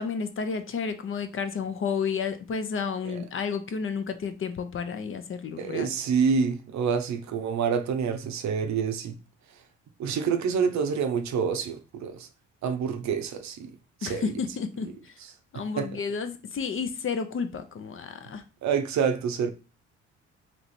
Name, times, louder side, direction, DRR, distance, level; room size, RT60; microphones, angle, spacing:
voice 1, 0.0-5.9 14.0-15.1 15.5-18.4, left 5 dB, 45° left, 0.7 m, -31 dB
voice 2, 5.6-9.2 10.0-12.3 12.6-13.7 14.0-14.3 15.8-15.9 18.6-19.5, right 6 dB, 65° right, 0.7 m, -27 dB
3.3 x 3.0 x 4.1 m
cardioid pair, 90°, 30 cm